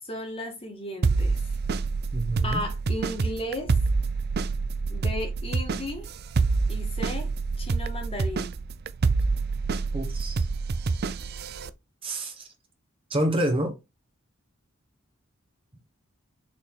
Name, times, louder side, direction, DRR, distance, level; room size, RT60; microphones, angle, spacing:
voice 1, 0.0-1.4 2.4-3.8 4.9-6.1 6.7-7.3 7.6-8.5, left 1 dB, 25° left, 1.8 m, -35 dB
sound 1, 1.0-11.7, right 4 dB, 50° right, 0.5 m, -27 dB
voice 2, 2.1-2.6 9.9-10.5 12.0-12.5 13.1-13.7, right 1 dB, 25° right, 1.2 m, -27 dB
6.4 x 4.2 x 3.7 m
head